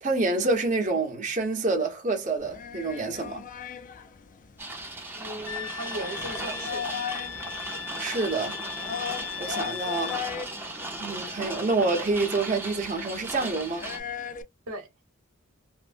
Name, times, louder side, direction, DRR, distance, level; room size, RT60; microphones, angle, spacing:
voice 1, 0.0-3.5 8.0-8.6 9.4-10.3 11.0-13.9, right 3 dB, 35° right, 0.9 m, -27 dB
sound 1, 2.4-14.4, left 8 dB, 40° left, 0.4 m, -39 dB
sound 2, 4.6-14.0, right 2 dB, 10° right, 0.6 m, -37 dB
voice 2, 5.1-6.8 14.7-14.9, right 1 dB, 90° right, 1.1 m, -37 dB
Wind instrument woodwind instrument, 5.4-10.2, left 7 dB, 90° left, 0.7 m, -38 dB
3.2 x 2.1 x 2.5 m
head